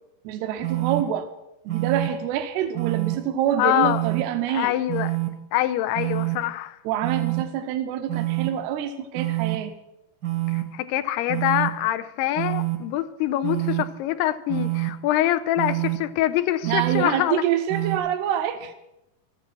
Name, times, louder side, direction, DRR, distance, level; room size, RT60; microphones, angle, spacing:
voice 1, 0.2-1.3 1.7-4.7 6.9-9.8 16.7-18.7, right 10 dB, 80° right, 7 dB, 2.8 m, -26 dB
sound 1, 0.6-1.0 1.7-2.1 2.7-3.1 3.8-4.2 4.9-5.3 5.9-6.4 7.0-7.4 8.1-8.5 9.1-9.6 10.2-10.6 11.3-11.7 12.4-12.8 13.4-13.8 14.5-14.9 15.6-16.0 16.6-17.0 17.7-18.0, right 19 dB, 55° right, 1.1 m, -26 dB
voice 2, 3.6-4.0 4.5-5.1 5.5-6.8 10.5-17.4, left 14 dB, 90° left, 10 dB, 2.7 m, -25 dB
13.5 x 9.8 x 7.5 m, 0.90 s
omnidirectional pair, 4.6 m